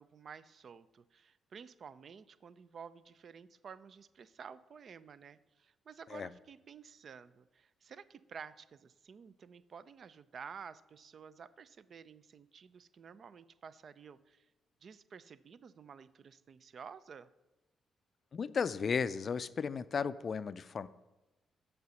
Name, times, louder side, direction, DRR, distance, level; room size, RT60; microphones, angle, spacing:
voice 1, 0.0-14.5 14.8-17.3, right 6 dB, 55° right, 15 dB, 0.4 m, -52 dB
voice 2, 18.3-20.9, left 6 dB, 50° left, 16 dB, 0.4 m, -34 dB
6.7 x 5.6 x 5.2 m, 1.1 s
hypercardioid pair, 45°, 0 cm